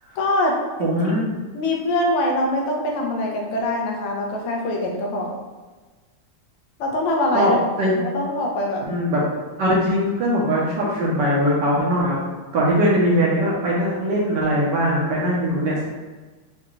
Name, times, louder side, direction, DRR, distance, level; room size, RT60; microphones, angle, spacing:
voice 1, 0.2-0.5 0.8-1.0 1.5-5.4 6.8-7.6 8.1-8.8, left 1 dB, 80° left, 0 dB, 1.5 m, -23 dB
voice 2, 0.8-1.2 7.3-7.9 8.8-9.2 9.6-12.2 12.5-15.9, equal, 70° right, -5 dB, 1.1 m, -20 dB
4.9 x 2.2 x 3.0 m, 1.3 s
omnidirectional pair, 2.4 m